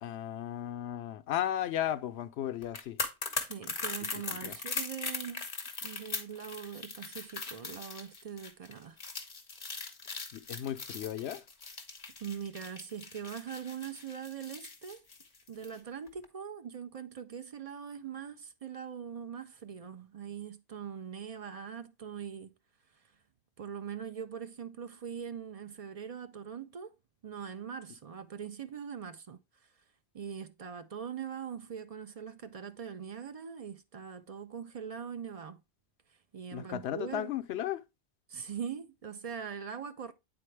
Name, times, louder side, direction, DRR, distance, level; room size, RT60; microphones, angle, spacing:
voice 1, 0.0-3.0 4.4-4.6 10.3-11.4 36.5-37.8, left 11 dB, 80° left, 0.9 m, -35 dB
sound 1, 2.6-15.8 16.1-16.2, left 4 dB, 35° left, 1.0 m, -40 dB
voice 2, 3.4-5.5 5.8-9.0 12.2-15.0 15.5-22.5 22.9-23.2 23.6-26.9 27.2-29.8 30.1-35.6 36.1-37.3 38.3-40.1, right 7 dB, 50° right, 0.4 m, -42 dB
8.4 x 4.4 x 3.2 m
omnidirectional pair, 1.1 m